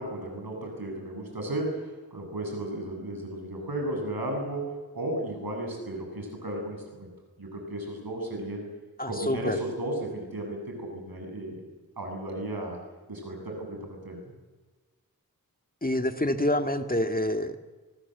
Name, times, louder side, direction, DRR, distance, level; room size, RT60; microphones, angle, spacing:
voice 1, 0.0-1.8 2.1-7.1 7.4-8.7 9.1-11.6 12.0-12.8 13.1-14.2, right 1 dB, 80° right, 2 dB, 7.9 m, -34 dB
voice 2, 9.0-9.6 15.8-17.7, left 1 dB, 25° left, 7 dB, 2.0 m, -27 dB
24.0 x 20.0 x 8.1 m, 1.3 s
wide cardioid pair, 45°, 36 cm